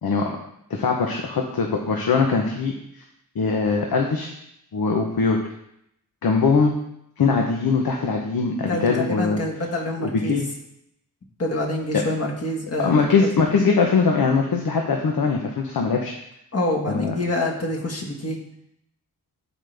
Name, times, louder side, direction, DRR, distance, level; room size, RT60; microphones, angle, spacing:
voice 1, 0.0-0.4 0.7-3.0 3.3-4.3 4.7-5.4 6.2-6.7 7.2-9.4 10.0-10.4 11.9-12.0 12.8-16.1 16.9-17.1, left 4 dB, 75° left, 1 dB, 1.0 m, -21 dB
voice 2, 8.7-10.5 11.4-13.3 16.5-18.4, left 1 dB, 40° left, -1 dB, 1.7 m, -26 dB
11.5 x 4.0 x 3.5 m, 0.76 s
cardioid pair, 65°, 36 cm